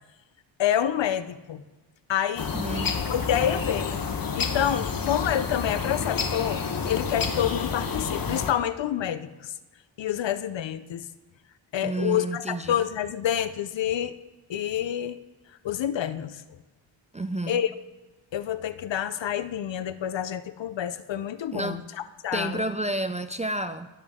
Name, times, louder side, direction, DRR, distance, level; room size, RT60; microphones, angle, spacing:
voice 1, 0.6-1.6 2.1-2.5 3.1-4.0 4.3-9.5 10.0-11.1 11.7-14.1 14.5-15.2 15.6-16.4 17.5-17.7 18.3-21.8 22.2-22.6, left 10 dB, 65° left, 13 dB, 0.7 m, -28 dB
sound 1, 2.4-8.5, left 5 dB, 45° left, 1.1 m, -29 dB
voice 2, 2.5-3.0 11.8-12.8 17.1-17.6 21.5-21.8 22.3-23.9, right 2 dB, 15° right, 9 dB, 0.3 m, -30 dB
21.5 x 7.2 x 3.6 m, 1.1 s
wide cardioid pair, 100°, 48 cm